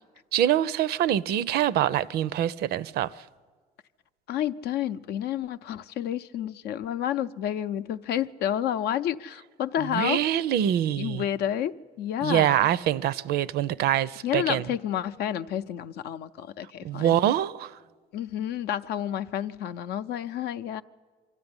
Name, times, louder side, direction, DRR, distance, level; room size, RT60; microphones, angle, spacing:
voice 1, 0.3-3.3 9.8-11.2 12.2-14.6 16.8-17.8, right 11 dB, 70° right, 0.5 m, -25 dB
voice 2, 4.3-10.2 11.0-12.6 14.2-17.2 18.1-20.8, left 10 dB, 75° left, 0.6 m, -30 dB
24.0 x 13.0 x 9.7 m
cardioid pair, 110°, 17 cm